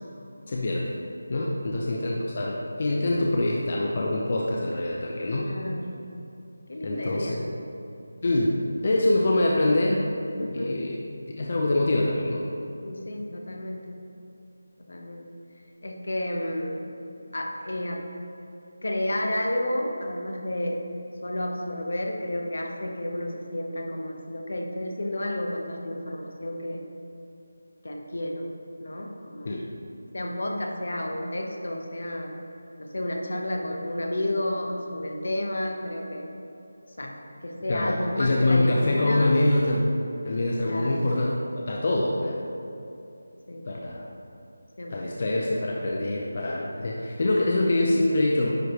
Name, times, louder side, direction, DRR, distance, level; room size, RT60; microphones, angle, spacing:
voice 1, 0.5-1.0 1.3-5.5 6.8-7.4 8.2-8.6 8.8-10.1 10.4-11.0 11.4-12.5 29.4-29.7 37.7-42.4 43.7-44.1 44.9-48.6, left 1 dB, 40° left, -2 dB, 0.6 m, -25 dB
voice 2, 5.3-6.0 6.7-7.4 10.4-10.8 12.8-13.9 14.9-15.3 15.8-16.9 17.3-18.0 18.8-20.8 21.2-26.8 27.8-28.5 28.8-29.5 30.1-32.3 32.8-36.3 37.0-37.1 37.4-39.4 40.6-41.2 43.5-43.6 44.8-45.1, left 1 dB, 70° left, 2 dB, 1.0 m, -31 dB
9.8 x 4.7 x 3.1 m, 2.7 s
figure-of-eight pair, 170°, 0 cm